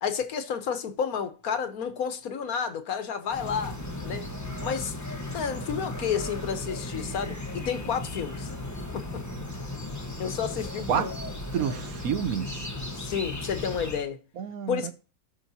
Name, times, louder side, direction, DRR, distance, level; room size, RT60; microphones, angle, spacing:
voice 1, 0.0-3.8 4.0-4.3 4.6-5.0 5.3-8.5 8.9-9.2 10.2-11.1 12.9-14.2 14.7-14.9, left 7 dB, 70° left, 1.4 m, -31 dB
sound 1, 3.3-14.1, left 1 dB, 15° left, 1.0 m, -36 dB
voice 2, 11.5-12.7 14.4-14.9, right 8 dB, 70° right, 1.2 m, -29 dB
13.0 x 4.6 x 2.7 m
omnidirectional pair, 1.6 m